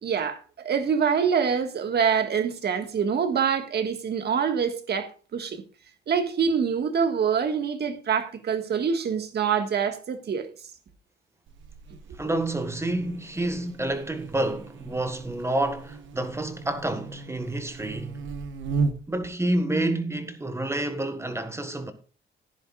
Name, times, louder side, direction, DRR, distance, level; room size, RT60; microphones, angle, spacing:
voice 1, 0.0-5.6 6.1-10.5, right 6 dB, 55° right, 1.7 m, -25 dB
Buzz, 11.5-19.2, right 4 dB, 75° right, 1.2 m, -36 dB
voice 2, 12.2-18.2 19.1-21.9, right 1 dB, 15° right, 1.5 m, -29 dB
15.0 x 10.5 x 2.4 m
cardioid pair, 90°, 20 cm